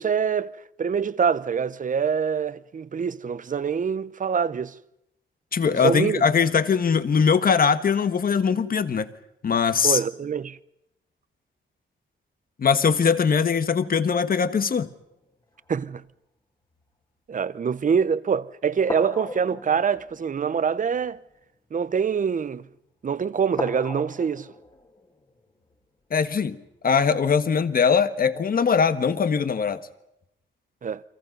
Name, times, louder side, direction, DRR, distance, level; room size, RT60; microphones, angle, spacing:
voice 1, 0.0-4.8 5.7-6.2 9.8-10.6 15.7-16.0 17.3-21.2 21.7-22.7 23.0-24.5 30.8-31.0, right 6 dB, 40° right, 0.8 m, -25 dB
voice 2, 5.5-9.1 9.4-10.0 12.6-14.9 26.1-26.6 26.8-29.8, left 6 dB, 45° left, 1.4 m, -21 dB
sound 1, 14.8-16.1 16.6-16.9 17.7-17.9 18.8-22.4 22.9-23.2 23.5-27.0 27.7-27.8, left 2 dB, 25° left, 2.3 m, -40 dB
30.0 x 24.5 x 5.4 m
wide cardioid pair, 125°, 20 cm